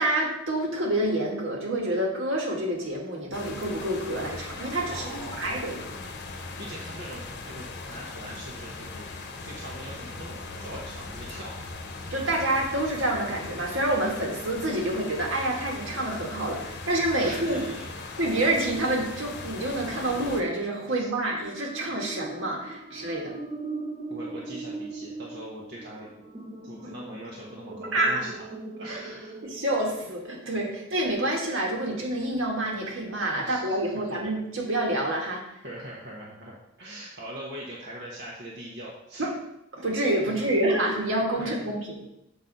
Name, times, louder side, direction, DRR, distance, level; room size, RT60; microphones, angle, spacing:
voice 1, 0.0-5.8 12.1-17.7 18.2-23.3 27.9-28.2 28.9-29.0 29.4-35.4 39.2-39.3 39.7-42.0, right 1 dB, 75° right, -1 dB, 1.8 m, -27 dB
sound 1, 3.3-20.4, left 3 dB, 55° left, 0.9 m, -39 dB
voice 2, 4.9-5.7 6.6-9.1 9.4-11.5 16.8-16.9 17.2-18.2 20.9-21.1 24.1-26.1 26.6-28.4 28.8-29.3 33.3-33.9 35.6-39.2 40.2-40.5 41.4-41.6, right 1 dB, 60° right, -4 dB, 1.1 m, -42 dB
sound 2, 21.2-30.6, right 3 dB, 40° right, 1.4 m, -40 dB
7.2 x 4.1 x 5.4 m, 0.84 s
head